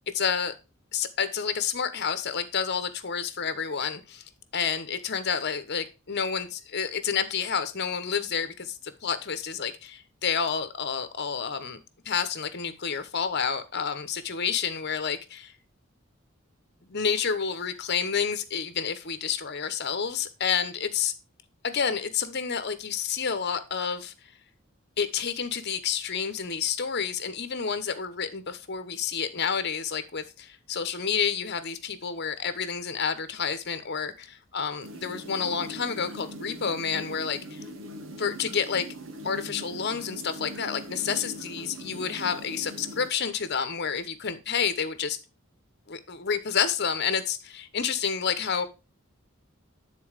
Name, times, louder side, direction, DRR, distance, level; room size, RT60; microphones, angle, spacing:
voice 1, 0.1-0.5 0.9-4.2 4.5-11.8 12.0-15.5 16.8-21.1 21.6-24.1 25.0-37.6 38.2-38.9 39.2-45.2 45.9-48.7, left 6 dB, 55° left, 11 dB, 1.0 m, -29 dB
sound 1, 34.8-43.1, right 1 dB, 75° right, 1.2 m, -41 dB
9.4 x 4.1 x 5.0 m, 0.30 s
head